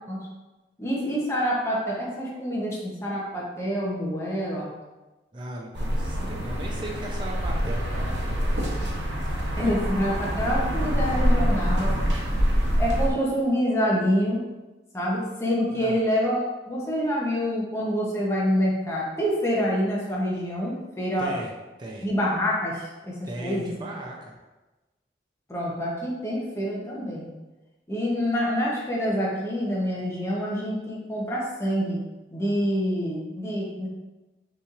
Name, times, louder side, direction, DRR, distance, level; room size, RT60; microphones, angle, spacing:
voice 1, 0.8-4.7 9.6-12.0 12.8-14.4 14.9-21.3 22.0-23.7 25.5-27.3 27.9-32.0 32.3-33.9, equal, 15° left, -5 dB, 0.7 m, -26 dB
voice 2, 5.3-8.7 9.3-9.7 15.7-16.0 21.2-21.5 21.8-22.1 23.2-24.3, right 1 dB, 25° right, -1 dB, 0.4 m, -37 dB
sound 1, 5.7-13.1, equal, 85° right, 0.8 m, -25 dB
5.6 x 3.1 x 2.4 m, 1.1 s
head